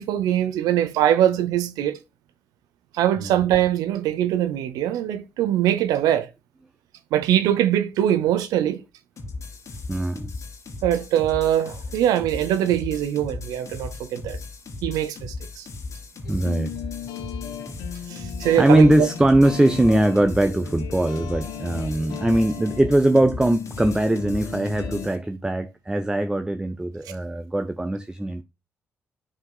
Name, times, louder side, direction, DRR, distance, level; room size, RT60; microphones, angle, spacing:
voice 1, 0.0-2.0 2.9-6.3 7.1-8.8 10.8-14.4 14.8-15.7 18.1-19.1 27.1-27.2, right 11 dB, 70° right, 0.7 m, -22 dB
sound 1, 9.2-25.2, left 3 dB, 50° left, 2.4 m, -37 dB
voice 2, 9.9-10.3 16.3-16.8 18.6-28.4, right 1 dB, 10° right, 0.7 m, -21 dB
sound 2, 16.2-25.1, left 9 dB, 70° left, 1.5 m, -37 dB
9.7 x 5.8 x 2.3 m
hypercardioid pair, 45°, 7 cm